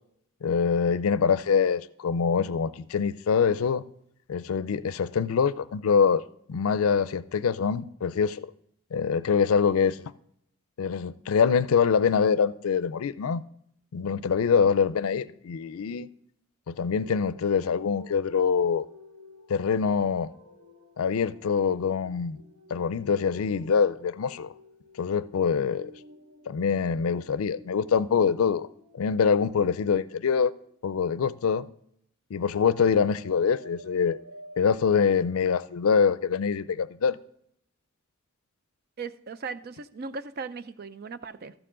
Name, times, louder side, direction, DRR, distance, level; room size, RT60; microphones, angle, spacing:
voice 1, 0.4-3.8 4.3-6.2 6.5-8.5 8.9-10.1 10.8-13.4 13.9-16.1 16.7-18.9 19.5-20.3 21.0-22.4 22.7-24.5 25.0-25.9 26.5-28.7 28.9-30.5 30.8-31.6 32.3-34.2 34.6-37.2, left 6 dB, 85° left, 0.4 m, -24 dB
sound 1, 17.0-31.1 32.6-34.8, equal, 80° right, 1.9 m, -51 dB
voice 2, 39.0-41.5, right 4 dB, 45° right, 0.5 m, -38 dB
13.5 x 6.9 x 3.7 m
head